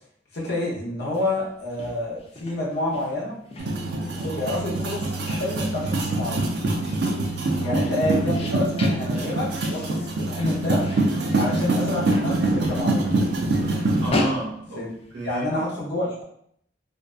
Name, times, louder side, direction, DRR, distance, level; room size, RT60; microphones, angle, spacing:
voice 1, 0.3-3.3 4.0-6.4 7.6-10.8 11.4-13.1 14.8-14.9 15.2-16.2, left 1 dB, 65° left, -5 dB, 0.7 m, -28 dB
sound 1, 1.0-15.5, left 2 dB, 35° left, 0.4 m, -37 dB
sound 2, 3.6-14.1, right 2 dB, 65° right, 0.4 m, -24 dB
voice 2, 7.6-8.0 14.0-15.6, right 2 dB, 85° right, -4 dB, 0.9 m, -32 dB
2.6 x 2.2 x 2.3 m, 0.68 s
head